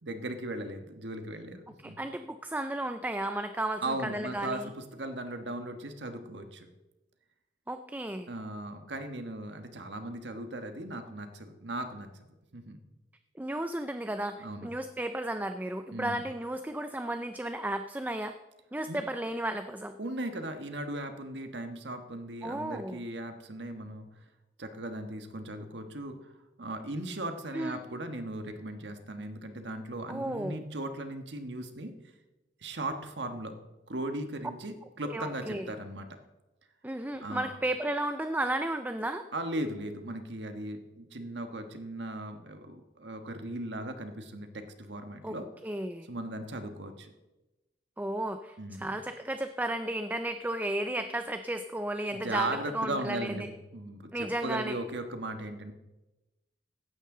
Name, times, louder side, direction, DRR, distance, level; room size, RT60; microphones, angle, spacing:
voice 1, 0.0-2.0 3.8-6.7 8.3-12.8 14.4-14.7 15.9-16.2 18.9-19.0 20.0-24.1 24.6-26.3 26.6-31.9 32.6-33.5 33.9-36.1 37.2-37.5 39.3-45.5 46.1-47.1 48.6-49.0 52.1-55.7, right 1 dB, 85° right, 7 dB, 1.4 m, -38 dB
voice 2, 1.8-4.7 7.7-8.3 13.4-18.3 18.7-20.0 22.4-23.0 27.5-27.8 30.1-30.6 35.1-35.7 36.8-39.2 45.2-45.4 45.6-46.1 48.0-53.5 54.1-54.8, right 1 dB, 10° right, 8 dB, 0.4 m, -34 dB
16.0 x 12.0 x 3.8 m, 1.0 s
head